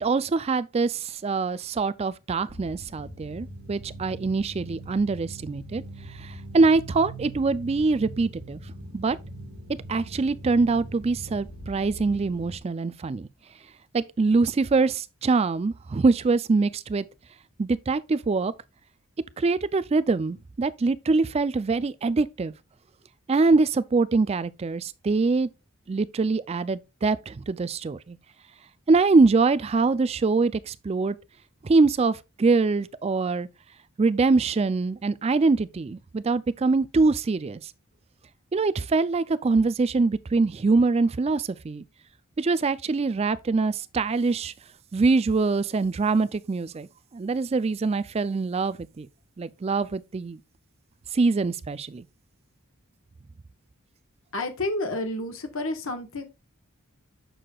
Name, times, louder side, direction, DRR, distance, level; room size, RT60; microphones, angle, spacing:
voice 1, 0.0-5.8 6.1-8.6 8.9-9.2 9.9-13.3 13.9-17.1 17.6-18.5 19.4-22.5 23.3-25.5 25.9-28.2 28.9-31.2 31.6-33.5 34.0-37.7 38.5-41.8 42.4-44.5 44.9-46.9 47.1-49.1 49.4-50.4 51.1-52.0, right 3 dB, 30° right, 0.3 m, -24 dB
sound 1, 2.5-12.6, right 1 dB, 80° right, 1.4 m, -41 dB
voice 2, 54.3-56.2, left 2 dB, 65° left, 1.4 m, -30 dB
7.6 x 6.5 x 2.3 m
head